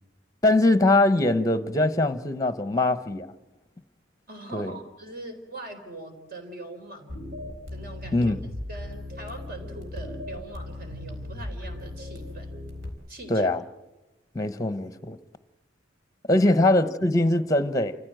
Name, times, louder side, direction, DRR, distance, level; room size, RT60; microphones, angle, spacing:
voice 1, 0.4-3.3 4.5-4.7 8.1-8.4 13.3-13.6 14.3-15.2 16.3-18.0, left 2 dB, 20° left, 0.8 m, -22 dB
voice 2, 4.3-7.2 7.7-8.3 8.7-12.5 13.1-13.5 16.4-16.5, right 2 dB, 50° right, 4.0 m, -42 dB
sound 1, 7.1-12.9, left 1 dB, 65° right, 4.2 m, -37 dB
28.5 x 15.0 x 7.8 m
head